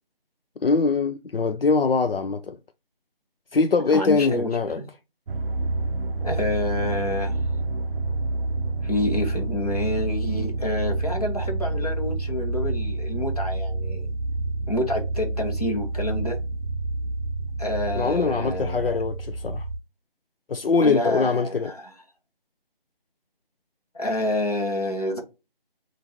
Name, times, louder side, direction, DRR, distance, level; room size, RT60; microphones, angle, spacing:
voice 1, 0.6-2.6 3.5-4.8 18.0-19.6 20.5-21.7, left 4 dB, 70° left, 0.5 m, -22 dB
voice 2, 3.9-4.5 4.8-4.9 6.2-7.4 8.8-14.1 14.7-16.4 17.6-19.0 20.8-21.9 23.9-25.2, left 1 dB, 40° left, 1.1 m, -28 dB
sound 1, 5.3-19.8, right 2 dB, 70° right, 0.5 m, -28 dB
5.3 x 2.5 x 2.8 m
figure-of-eight pair, 175°, 30 cm